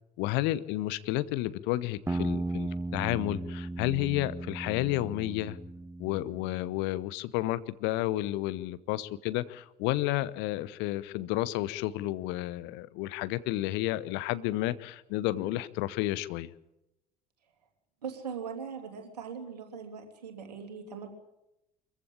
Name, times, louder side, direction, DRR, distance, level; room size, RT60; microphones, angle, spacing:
voice 1, 0.2-5.6 6.0-16.5, left 16 dB, 60° left, 17 dB, 0.9 m, -31 dB
sound 1, 2.1-6.7, right 2 dB, 10° right, 1.0 m, -36 dB
voice 2, 18.0-21.1, right 6 dB, 80° right, 5 dB, 2.9 m, -40 dB
24.5 x 15.0 x 8.6 m, 0.90 s
figure-of-eight pair, 55°, 20 cm